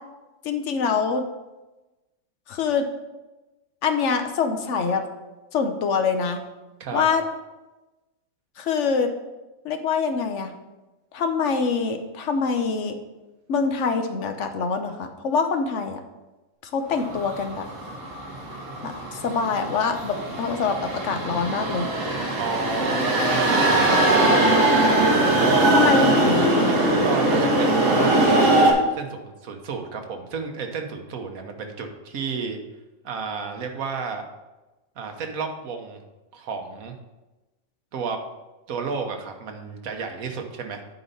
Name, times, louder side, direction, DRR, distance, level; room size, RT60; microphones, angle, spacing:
voice 1, 0.4-1.2 2.5-2.8 3.8-5.0 5.5-6.4 6.9-7.2 8.6-9.1 9.6-10.5 11.1-13.0 13.5-16.0 16.7-17.6 18.8-18.9 19.2-21.9 25.7-26.7, left 5 dB, 60° left, 6 dB, 1.1 m, -24 dB
sound 1, 17.1-28.7, right 1 dB, 65° right, 1.7 m, -21 dB
voice 2, 22.4-24.8 25.4-25.9 27.0-32.6 33.0-34.2 35.0-36.0 36.3-36.9 37.9-38.2 38.7-40.8, right 5 dB, 85° right, 4 dB, 1.4 m, -31 dB
9.4 x 4.0 x 5.5 m, 1.1 s
omnidirectional pair, 1.4 m